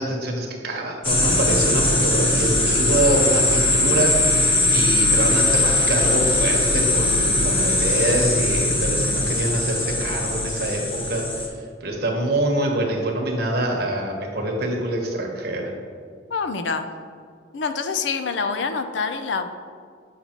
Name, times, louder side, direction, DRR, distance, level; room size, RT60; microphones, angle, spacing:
voice 1, 0.0-11.2 11.8-15.7, right 1 dB, 55° right, 1 dB, 1.1 m, -25 dB
sound 1, 1.0-11.5, left 2 dB, 30° left, 0.9 m, -20 dB
voice 2, 16.3-16.9 17.5-19.5, left 5 dB, 70° left, 9 dB, 0.5 m, -26 dB
7.4 x 5.5 x 2.9 m, 2.1 s
head